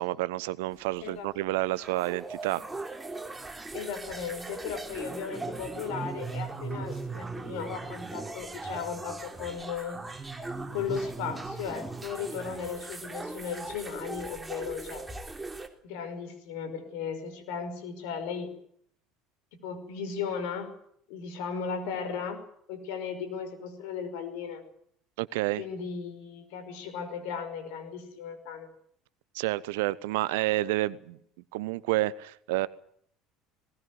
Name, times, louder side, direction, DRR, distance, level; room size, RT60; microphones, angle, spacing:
voice 1, 0.0-2.6 25.2-25.6 29.3-31.2 31.5-32.7, right 18 dB, 70° right, 20 dB, 0.9 m, -29 dB
sound 1, 0.7-15.7, right 3 dB, 15° right, 3.7 m, -39 dB
voice 2, 3.7-10.0 10.7-15.0 15.8-18.5 19.5-20.7 21.1-22.4 22.7-24.6 25.6-28.7, left 6 dB, 65° left, 9 dB, 5.5 m, -36 dB
20.0 x 19.5 x 9.7 m, 0.67 s
figure-of-eight pair, 65°, 0 cm